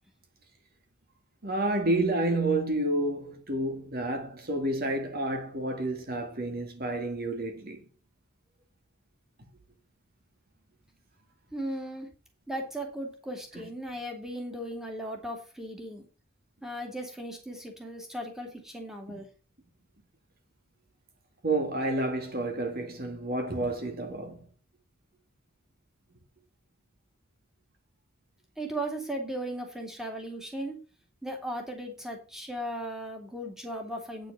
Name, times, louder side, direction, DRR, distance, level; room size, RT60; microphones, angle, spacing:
voice 1, 1.4-7.8 19.1-19.2 21.4-24.5, right 2 dB, 45° right, 2.0 m, -30 dB
voice 2, 11.5-12.1 12.5-16.0 16.6-19.3 28.6-30.8 31.2-34.3, right 1 dB, ahead, 2.4 m, -37 dB
9.4 x 6.4 x 6.8 m
head